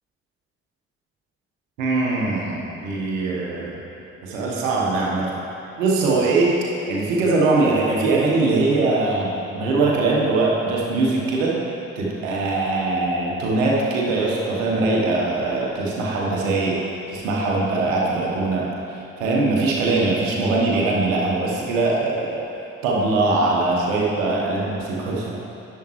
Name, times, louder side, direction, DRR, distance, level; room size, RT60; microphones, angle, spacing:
voice 1, 1.8-3.8 4.2-5.4 5.8-6.5 6.9-11.5 11.9-16.8 17.1-22.4 22.8-25.3, right 3 dB, 75° right, -3 dB, 1.2 m, -21 dB
10.5 x 7.3 x 3.1 m, 2.9 s
figure-of-eight pair, 40°, 39 cm